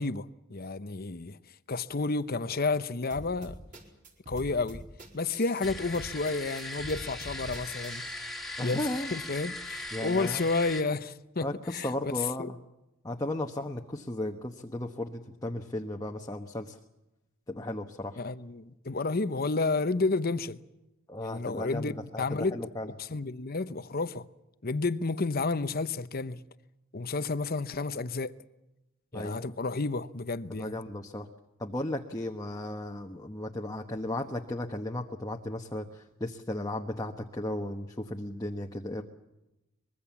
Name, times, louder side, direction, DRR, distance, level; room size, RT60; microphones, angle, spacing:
voice 1, 0.0-1.4 1.7-3.6 4.3-4.8 5.1-8.0 8.6-12.1 12.4-12.5 18.2-20.6 21.2-22.5 22.8-24.3 24.6-26.4 26.9-28.4 29.1-30.8, left 3 dB, 45° left, 0.9 m, -31 dB
sound 1, 3.1-8.2, equal, 40° right, 4.5 m, -44 dB
sound 2, 5.6-10.8, left 2 dB, ahead, 2.4 m, -39 dB
voice 2, 8.6-9.1 9.9-10.4 11.4-12.6 13.0-16.8 17.5-18.3 21.1-22.9 29.1-29.5 30.5-31.3 31.6-39.0, left 1 dB, 20° left, 1.2 m, -35 dB
24.0 x 22.0 x 7.3 m
head